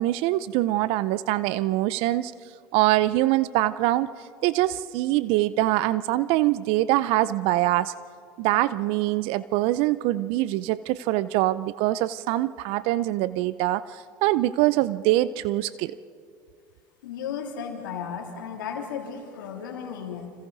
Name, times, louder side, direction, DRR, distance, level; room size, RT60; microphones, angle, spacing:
voice 1, 0.0-2.3 2.7-4.1 4.4-7.9 8.4-16.0, right 16 dB, 65° right, 17 dB, 0.6 m, -24 dB
voice 2, 17.0-20.3, left 7 dB, 85° left, 2 dB, 3.1 m, -34 dB
29.0 x 26.5 x 4.0 m, 2.2 s
hypercardioid pair, 80°, 11 cm